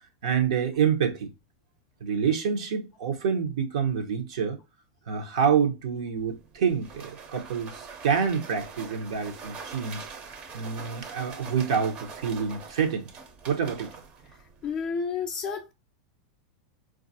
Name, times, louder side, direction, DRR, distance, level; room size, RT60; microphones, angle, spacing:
voice 1, 0.2-1.3 2.0-4.6 5.1-10.1 10.5-13.1 13.5-13.9, right 7 dB, 80° right, 0.7 m, -27 dB
sound 1, 6.2-14.9, right 5 dB, 35° right, 0.6 m, -44 dB
voice 2, 14.6-15.7, left 5 dB, 30° left, 0.3 m, -31 dB
3.9 x 2.4 x 2.6 m
supercardioid pair, 130°, 3 cm